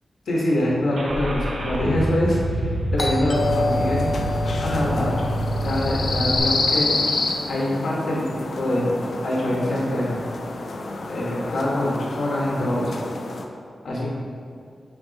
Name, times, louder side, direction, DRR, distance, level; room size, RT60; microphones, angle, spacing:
voice 1, 0.3-4.1 4.6-5.2 5.6-7.1 7.5-8.9 9.2-10.1 11.1-12.9 13.8-14.1, left 1 dB, 80° left, -4 dB, 1.6 m, -24 dB
Car / Engine starting, 0.9-6.4, right 1 dB, 80° right, 1.0 m, -27 dB
Doorbell, 3.0-7.6, left 2 dB, 30° left, 0.9 m, -30 dB
sound 1, 3.3-13.4, left 3 dB, 60° left, 0.5 m, -29 dB
6.4 x 4.6 x 4.1 m, 2.2 s
wide cardioid pair, 140°, 0 cm